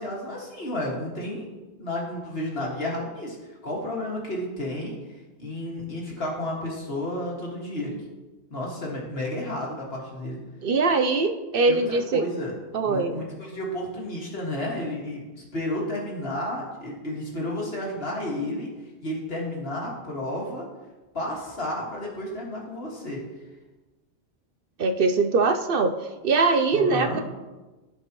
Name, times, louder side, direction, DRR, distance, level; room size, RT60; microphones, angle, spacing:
voice 1, 0.0-1.5 1.8-7.9 8.5-10.4 11.7-12.5 12.8-18.7 19.0-20.7 21.1-23.2 26.7-27.2, left 1 dB, 60° left, -3 dB, 2.3 m, -32 dB
voice 2, 10.6-12.2 12.7-13.2 24.8-25.9 26.2-27.2, right 3 dB, 60° right, 8 dB, 0.8 m, -22 dB
16.0 x 5.5 x 3.1 m, 1.2 s
omnidirectional pair, 1.1 m